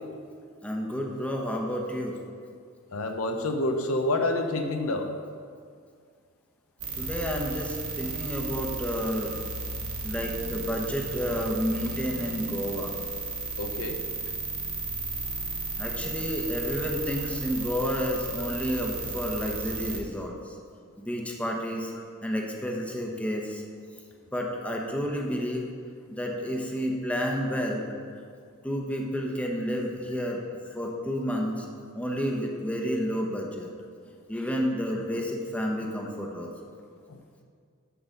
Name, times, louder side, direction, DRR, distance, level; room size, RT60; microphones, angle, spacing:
voice 1, 0.6-2.2 7.0-9.4 10.0-12.9 15.8-20.3 21.0-21.9 22.2-23.6 24.3-25.7 26.1-27.8 28.6-30.4 30.7-31.6 31.9-33.7 34.3-36.5, equal, 5° left, 0 dB, 0.9 m, -30 dB
voice 2, 2.9-5.1 13.6-14.2 18.4-18.5 22.0-22.1 37.1-37.2, left 2 dB, 70° left, 5 dB, 0.7 m, -28 dB
sound 1, 6.8-20.0, right 3 dB, 70° right, 1.2 m, -34 dB
11.0 x 3.9 x 6.6 m, 2.1 s
head